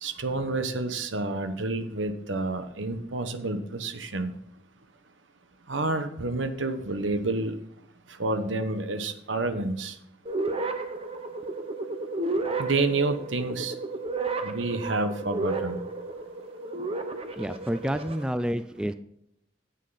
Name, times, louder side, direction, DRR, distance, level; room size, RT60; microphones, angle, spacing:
voice 1, 0.0-4.3 5.7-7.6 8.2-10.0 12.6-13.7 14.4-15.8, right 2 dB, 85° right, 9 dB, 1.0 m, -29 dB
sound 1, 10.3-18.2, right 3 dB, 30° right, 0.9 m, -32 dB
voice 2, 17.4-18.9, equal, 5° right, 12 dB, 0.3 m, -29 dB
9.6 x 8.3 x 4.0 m, 0.72 s
head